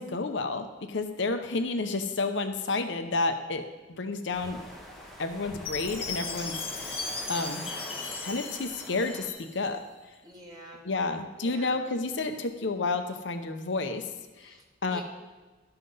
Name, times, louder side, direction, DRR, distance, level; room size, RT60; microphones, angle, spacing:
voice 1, 0.0-3.7 4.0-4.6 5.2-6.6 7.3-7.6 8.2-9.8 10.8-14.0 14.4-14.5 14.8-15.0, left 3 dB, 65° left, 7 dB, 0.7 m, -30 dB
sound 1, 4.3-9.3, equal, ahead, 1.3 m, -43 dB
Chime, 5.6-9.8, left 4 dB, 30° left, 1.3 m, -37 dB
voice 2, 10.2-10.9 11.3-11.8 14.4-15.0, right 1 dB, 20° right, -2 dB, 1.8 m, -47 dB
12.0 x 5.8 x 5.4 m, 1.3 s
head